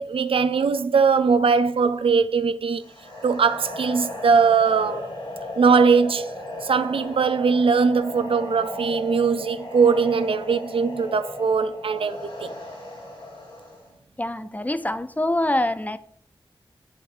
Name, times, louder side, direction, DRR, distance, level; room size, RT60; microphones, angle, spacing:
voice 1, 0.0-2.8 3.2-5.1 5.6-6.3 6.6-12.5, right 5 dB, 85° right, 0.4 m, -20 dB
sound 1, 2.8-13.9, left 1 dB, 65° left, 2.4 m, -36 dB
voice 2, 14.2-16.0, left 1 dB, 15° left, 0.5 m, -25 dB
7.6 x 5.1 x 3.8 m
cardioid pair, 45°, 9 cm